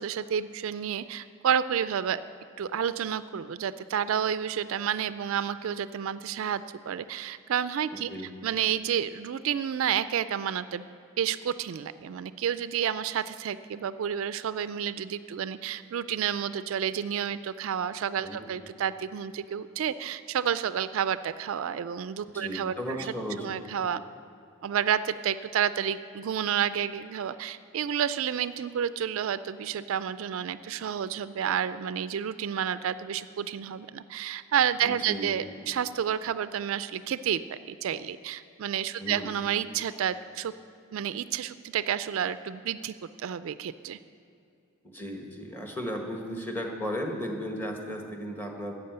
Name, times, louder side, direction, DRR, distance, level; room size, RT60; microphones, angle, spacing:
voice 1, 0.0-2.2 2.6-8.1 8.4-10.9 11.2-23.1 23.4-24.0 24.6-40.5 40.9-44.0, right 8 dB, 70° right, 14 dB, 0.3 m, -30 dB
voice 2, 7.9-8.3 18.2-18.4 22.3-23.7 34.8-35.3 39.0-39.3 44.8-48.8, equal, 10° left, 2 dB, 1.3 m, -35 dB
12.0 x 8.0 x 7.9 m, 2.6 s
head